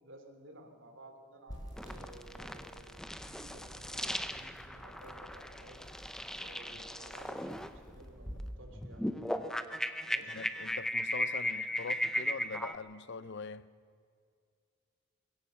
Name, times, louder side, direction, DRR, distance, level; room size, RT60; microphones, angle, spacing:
voice 1, 0.0-5.8 6.4-9.0 10.1-10.4, right 1 dB, 65° right, 3.2 m, -55 dB
sound 1, 1.5-8.5, equal, 20° left, 6.7 m, -50 dB
sound 2, 1.8-12.8, left 1 dB, 5° left, 0.8 m, -37 dB
voice 2, 10.3-13.7, left 4 dB, 60° left, 0.7 m, -43 dB
23.0 x 16.5 x 7.1 m
head